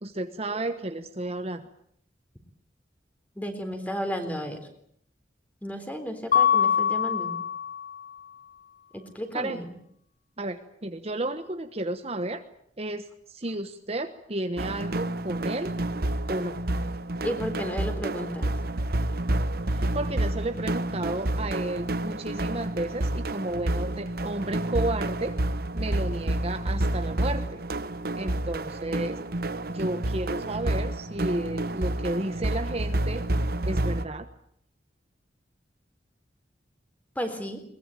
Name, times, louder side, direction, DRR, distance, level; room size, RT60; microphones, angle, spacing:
voice 1, 0.0-1.6 9.3-9.6 10.4-12.4 12.8-15.7 16.3-16.6 19.7-25.4 25.7-27.6 28.1-29.2 29.7-33.2 33.7-34.3, right 1 dB, 35° right, 8 dB, 1.2 m, -32 dB
voice 2, 3.4-4.6 5.6-7.4 8.9-9.7 17.2-18.5 37.2-37.6, equal, 10° left, 7 dB, 3.7 m, -33 dB
Mallet percussion, 6.3-8.1, left 8 dB, 45° left, 1.2 m, -24 dB
sound 1, 14.6-34.0, right 1 dB, 55° right, 1.1 m, -29 dB
22.0 x 20.5 x 9.0 m, 0.69 s
head